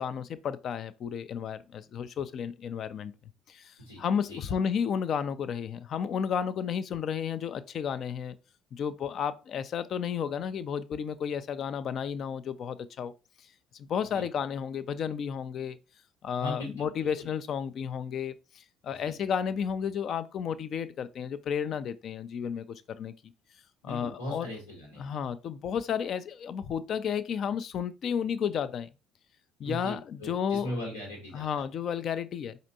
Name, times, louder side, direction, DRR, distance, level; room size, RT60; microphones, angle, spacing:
voice 1, 0.0-3.1 3.5-8.4 8.7-13.1 13.7-15.8 16.2-23.1 23.8-24.5 25.0-28.9 29.6-30.8 31.3-32.6, left 7 dB, 50° left, 0.4 m, -32 dB
voice 2, 4.3-4.6 14.1-14.3 16.4-16.9 17.2-17.3 19.0-19.2 23.8-25.3 29.6-31.6, left 1 dB, 90° left, 1.4 m, -39 dB
5.0 x 2.5 x 2.7 m
hypercardioid pair, 55°, 0 cm